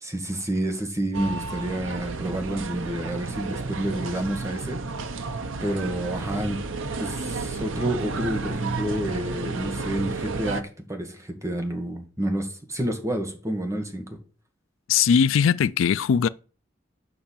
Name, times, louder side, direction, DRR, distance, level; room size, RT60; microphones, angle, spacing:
voice 1, 0.0-4.8 5.6-6.6 7.0-14.2, right 1 dB, 15° right, 1.7 m, -29 dB
sound 1, 1.1-10.6, right 3 dB, 90° right, 0.9 m, -32 dB
voice 2, 14.9-16.3, left 7 dB, 80° left, 0.4 m, -20 dB
6.8 x 5.6 x 7.3 m
head